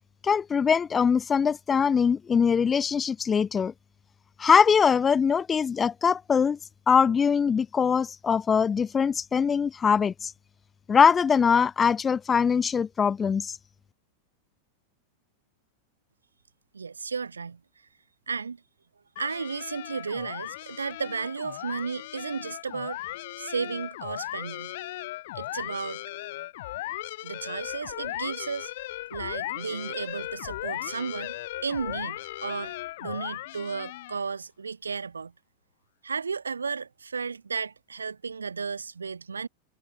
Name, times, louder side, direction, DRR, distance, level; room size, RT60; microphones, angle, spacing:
voice 1, 0.2-3.7 4.4-6.6 6.9-10.3 10.9-13.5, left 6 dB, 20° left, 0.4 m, -22 dB
voice 2, 16.7-17.6 18.3-18.6 19.2-23.0 23.4-24.7 25.3-26.0 27.2-28.7 29.1-32.7 33.0-35.3 36.0-39.5, right 5 dB, 75° right, 1.6 m, -34 dB
sound 1, 19.2-34.3, left 17 dB, 55° left, 1.4 m, -37 dB
figure-of-eight pair, 90°, 0 cm